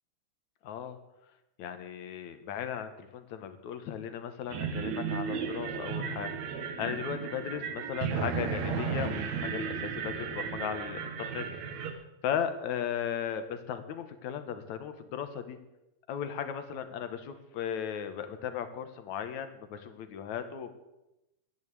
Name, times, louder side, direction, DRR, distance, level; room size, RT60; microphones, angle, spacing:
voice 1, 0.6-1.0 1.6-11.4 11.8-15.6 16.1-20.7, left 8 dB, 65° left, 9 dB, 2.3 m, -36 dB
sound 1, 4.5-11.9, right 6 dB, 60° right, 2.3 m, -34 dB
12.5 x 10.5 x 8.3 m, 0.93 s
omnidirectional pair, 3.9 m